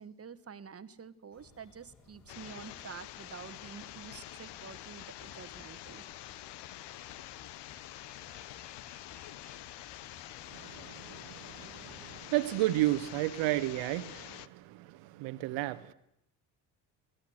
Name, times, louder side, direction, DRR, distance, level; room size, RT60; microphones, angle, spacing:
voice 1, 0.0-6.0, right 6 dB, 30° right, 1.5 m, -48 dB
sound 1, 1.3-12.2, left 3 dB, 35° left, 4.6 m, -60 dB
sound 2, 2.3-14.5, left 14 dB, 55° left, 1.0 m, -47 dB
voice 2, 10.4-15.9, right 16 dB, 65° right, 1.4 m, -33 dB
22.5 x 17.5 x 8.0 m
hypercardioid pair, 55°, 50 cm